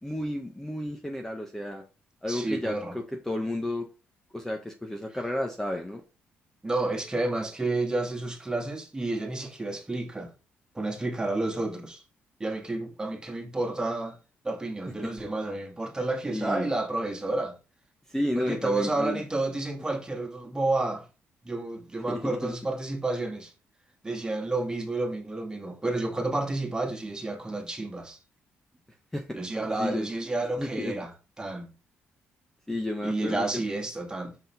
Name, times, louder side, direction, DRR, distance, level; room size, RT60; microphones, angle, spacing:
voice 1, 0.0-1.8 2.2-3.9 4.3-6.0 15.0-15.1 16.3-16.7 18.1-19.2 22.1-22.5 29.1-29.4 29.8-30.1 30.6-30.9 32.7-33.4, left 1 dB, 10° left, 1.3 m, -32 dB
voice 2, 2.3-3.0 6.6-10.3 10.7-12.0 12.4-14.2 14.4-17.6 18.3-21.0 21.4-23.5 24.0-28.2 29.3-31.7 33.0-34.3, right 2 dB, 15° right, 2.2 m, -30 dB
6.0 x 5.4 x 3.5 m
cardioid pair, 90°, 4 cm